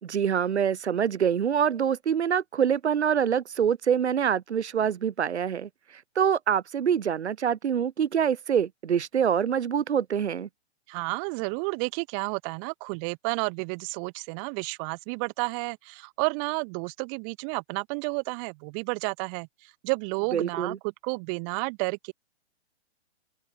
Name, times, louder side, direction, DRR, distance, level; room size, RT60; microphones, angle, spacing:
voice 1, 0.0-5.7 6.1-10.5 20.3-20.8, right 8 dB, 75° right, 3.1 m, -25 dB
voice 2, 10.9-20.8 21.0-22.1, right 40 dB or more, 30° right, 1.0 m, -31 dB
open air
hypercardioid pair, 135°, 34 cm